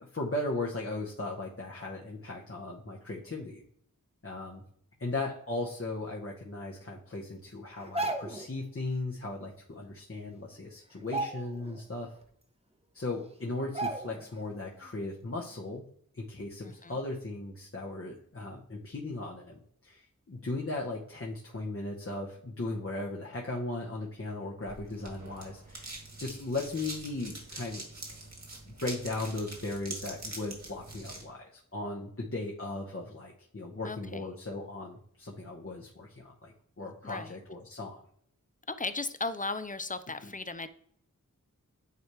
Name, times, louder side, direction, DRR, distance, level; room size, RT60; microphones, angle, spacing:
voice 1, 0.0-3.6 4.2-4.6 5.0-12.1 12.9-15.8 16.1-25.9 26.2-27.8 28.6-38.0 40.2-40.3, left 2 dB, 40° left, -2 dB, 1.0 m, -37 dB
sound 1, 7.8-8.5 10.0-10.1 10.4-10.6 11.0-11.8 12.2-12.3 13.1-13.2 13.7-14.4 14.7-14.9, right 2 dB, 20° right, 0.8 m, -35 dB
voice 2, 16.6-17.0 33.8-34.3 37.0-37.3 38.7-40.7, left 3 dB, 25° left, 12 dB, 0.5 m, -36 dB
sound 2, 24.6-31.2, right 2 dB, 55° right, 2.0 m, -44 dB
9.3 x 3.3 x 3.1 m, 0.65 s
wide cardioid pair, 45°, 33 cm